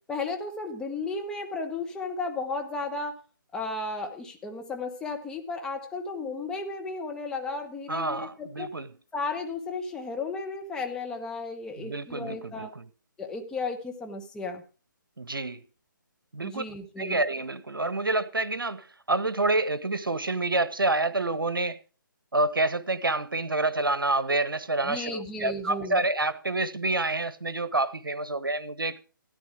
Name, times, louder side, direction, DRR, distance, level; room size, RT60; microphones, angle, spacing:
voice 1, 0.1-3.2 3.5-8.7 9.1-12.7 13.2-14.6 16.4-17.2 24.8-26.0, left 3 dB, 5° left, 1.0 m, -34 dB
voice 2, 7.9-8.9 11.8-12.9 15.2-15.6 16.3-16.6 17.0-21.8 22.3-29.0, right 2 dB, 85° right, 1.1 m, -28 dB
13.5 x 10.5 x 4.7 m
figure-of-eight pair, 145°, 11 cm